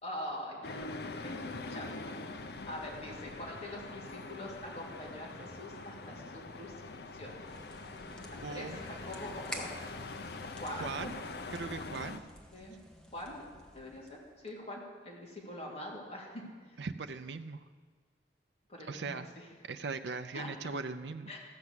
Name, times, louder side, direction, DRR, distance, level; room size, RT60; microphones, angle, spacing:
voice 1, 0.0-0.8 1.2-1.3 1.7-2.1 2.4-7.3 8.3-9.7 10.5-11.1 12.5-12.8 13.1-13.4 13.7-16.4 16.7-16.8 18.7-19.5 20.3-20.5 21.3-21.4, left 1 dB, 35° left, -3 dB, 2.7 m, -44 dB
sound 1, 0.6-12.2, left 3 dB, 60° left, 0.6 m, -44 dB
sound 2, 7.4-14.5, equal, 5° left, 0.9 m, -50 dB
voice 2, 8.4-8.7 10.8-11.1 11.5-12.2 16.8-17.6 18.9-19.3 19.6-21.3, right 4 dB, 70° right, 8 dB, 0.5 m, -39 dB
14.0 x 5.9 x 8.1 m, 1.5 s
head